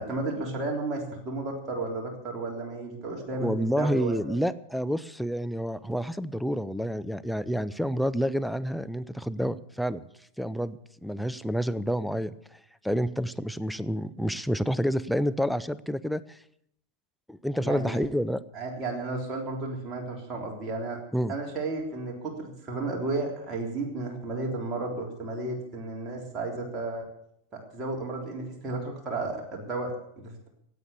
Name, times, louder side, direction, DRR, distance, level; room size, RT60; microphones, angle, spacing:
voice 1, 0.0-4.4 17.6-18.0 18.5-21.0 21.3-27.1 27.5-30.5, right 2 dB, 25° right, -1 dB, 3.6 m, -33 dB
voice 2, 3.4-10.0 10.4-12.6 12.8-16.4 17.3-18.4 21.1-21.3, equal, ahead, 14 dB, 0.6 m, -29 dB
16.5 x 8.7 x 8.4 m, 0.71 s
figure-of-eight pair, 90°, 0 cm